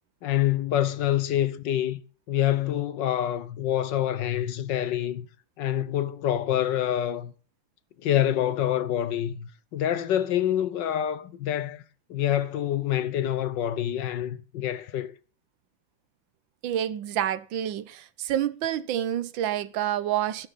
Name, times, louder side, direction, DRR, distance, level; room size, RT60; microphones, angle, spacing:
voice 1, 0.2-2.0 2.3-5.3 5.6-7.3 8.0-11.8 12.1-15.1, left 11 dB, 70° left, 1.5 m, -26 dB
voice 2, 16.6-20.5, right 11 dB, 80° right, 1.5 m, -28 dB
13.0 x 12.0 x 4.1 m
omnidirectional pair, 2.1 m